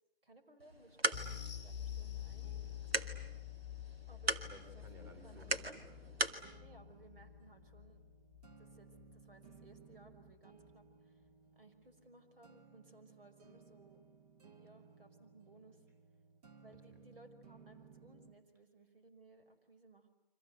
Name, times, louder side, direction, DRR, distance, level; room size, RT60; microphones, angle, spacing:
voice 1, 0.2-2.5 2.9-3.4 4.1-4.5 4.7-4.8 5.2-5.4 6.6-8.0 8.6-11.3 11.5-14.1 14.5-15.9 16.6-20.1, right 2 dB, 70° right, 7 dB, 5.4 m, -62 dB
sound 1, 0.6-6.4, right 1 dB, 90° right, 2.2 m, -40 dB
sound 2, 1.1-9.8 10.1-10.3 10.7-10.8, left 11 dB, ahead, 1.5 m, -48 dB
sound 3, 2.4-18.4, right 6 dB, 40° right, 2.1 m, -62 dB
voice 2, 4.3-6.1, equal, 20° right, 7 dB, 4.9 m, -58 dB
29.5 x 25.0 x 8.1 m, 0.89 s
figure-of-eight pair, 150°, 29 cm